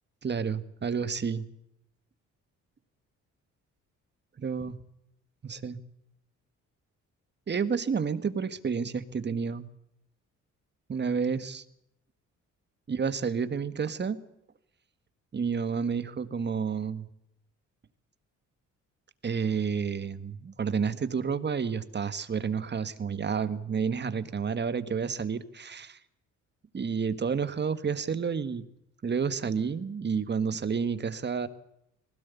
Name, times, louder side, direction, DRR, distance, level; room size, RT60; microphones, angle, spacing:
voice 1, 0.2-1.5 4.4-4.8 5.4-5.8 7.5-9.7 10.9-11.6 12.9-14.2 15.3-17.1 19.2-26.0 26.7-28.7 29.0-31.5, right 6 dB, 35° right, 13 dB, 1.7 m, -30 dB
20.0 x 17.5 x 8.3 m, 0.78 s
cardioid pair, 90°, 30 cm